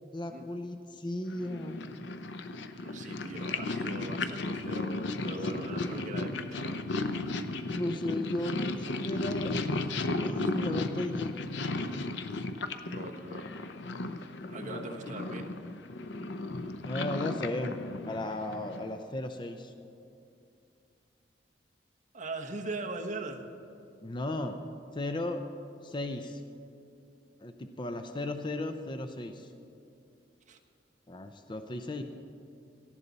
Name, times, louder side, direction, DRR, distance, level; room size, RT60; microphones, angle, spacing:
voice 1, 0.1-1.9 7.6-9.5 10.2-11.4 14.6-15.2 16.9-17.8 18.1-19.7 24.0-24.6 24.9-25.5 25.8-26.4 27.4-29.5 31.1-32.0, left 1 dB, 25° left, 7 dB, 0.6 m, -35 dB
Purr, 1.3-19.0, left 2 dB, 75° left, 0.7 m, -35 dB
voice 2, 2.8-6.8 12.8-13.5 14.5-15.5 22.1-23.5 30.5-30.6, right 2 dB, 45° right, 2 dB, 1.2 m, -40 dB
18.0 x 14.0 x 4.1 m, 2.6 s
head